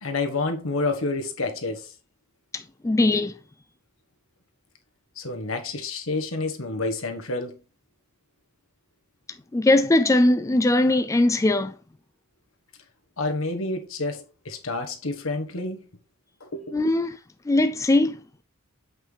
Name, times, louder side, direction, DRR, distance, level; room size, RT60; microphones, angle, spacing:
voice 1, 0.0-1.9 5.2-7.6 13.2-15.8 16.4-16.7, left 3 dB, 75° left, 1.4 m, -29 dB
voice 2, 2.5-3.3 9.5-11.7 16.7-17.2 17.5-18.2, left 2 dB, 15° left, 0.4 m, -20 dB
7.8 x 5.9 x 3.4 m
head